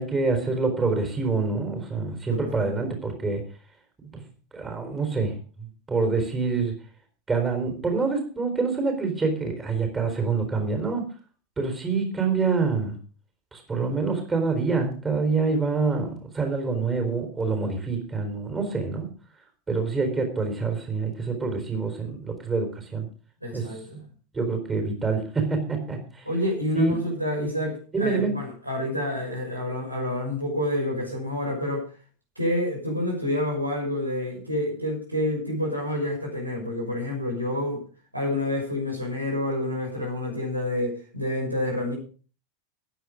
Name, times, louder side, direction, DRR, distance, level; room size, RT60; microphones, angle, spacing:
voice 1, 0.0-3.4 4.5-5.3 5.6-6.7 7.3-11.1 11.6-12.9 13.5-19.1 19.7-23.1 23.5-23.7 24.3-26.2 26.7-27.0 27.9-28.3, right 4 dB, 15° right, 5 dB, 4.1 m, -26 dB
voice 2, 2.3-2.7 23.4-24.0 26.2-31.9 32.4-37.8 38.1-42.0, left 1 dB, 90° right, -1 dB, 6.1 m, -28 dB
15.5 x 9.9 x 5.1 m, 0.39 s
figure-of-eight pair, 85°, 0 cm